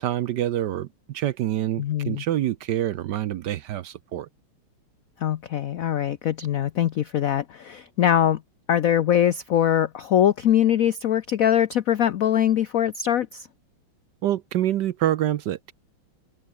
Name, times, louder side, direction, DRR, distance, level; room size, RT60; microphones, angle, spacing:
voice 1, 0.0-4.3 14.2-15.7, right 12 dB, 70° right, 1.1 m, -26 dB
voice 2, 1.8-2.2 5.2-8.4 8.7-13.5, left 10 dB, 90° left, 0.7 m, -22 dB
open air
omnidirectional pair, 2.3 m